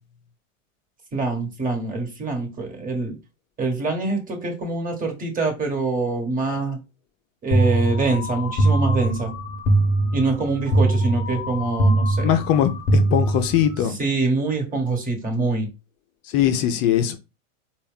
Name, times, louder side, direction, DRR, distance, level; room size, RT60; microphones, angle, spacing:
voice 1, 1.1-3.2 3.6-6.8 7.4-9.3 10.1-12.4 14.0-15.7, right 3 dB, 20° right, 1.4 m, -25 dB
sound 1, 7.5-13.9, right 1 dB, 20° left, 1.0 m, -22 dB
voice 2, 12.2-14.0 16.3-17.2, left 10 dB, 35° left, 0.5 m, -21 dB
4.3 x 2.4 x 3.5 m
hypercardioid pair, 105°, 41 cm